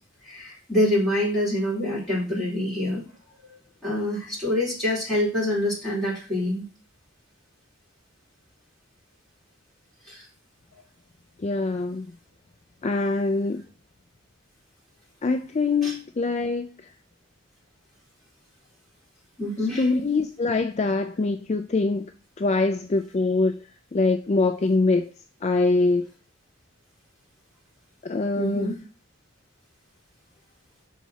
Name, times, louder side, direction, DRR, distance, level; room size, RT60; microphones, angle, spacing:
voice 1, 0.2-3.0 3.8-6.6 10.1-10.2 15.8-15.9 19.4-19.8 28.3-28.8, left 1 dB, ahead, -8 dB, 4.4 m, -26 dB
voice 2, 11.4-12.1 12.8-13.6 15.2-16.9 19.7-22.1 22.4-23.6 23.9-25.1 25.4-26.1 28.0-28.7, left 3 dB, 35° left, 7 dB, 0.4 m, -24 dB
5.9 x 4.0 x 6.2 m, 0.37 s
head